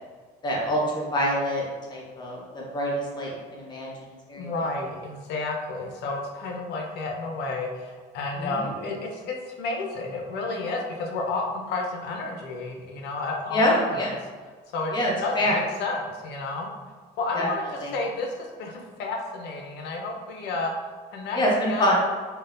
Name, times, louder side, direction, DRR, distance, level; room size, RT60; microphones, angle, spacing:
voice 1, 0.4-1.6 1.9-4.5 8.3-8.7 13.5-14.1 14.9-15.6 17.3-17.5 17.8-17.9 21.3-21.9, equal, 25° left, -4 dB, 0.9 m, -26 dB
voice 2, 4.3-14.0 14.7-16.7 17.2-17.7 17.9-20.7 21.1-21.4 21.7-21.9, left 3 dB, 75° left, 1 dB, 0.6 m, -31 dB
3.7 x 2.1 x 2.5 m, 1.5 s
cardioid pair, 110°, 17 cm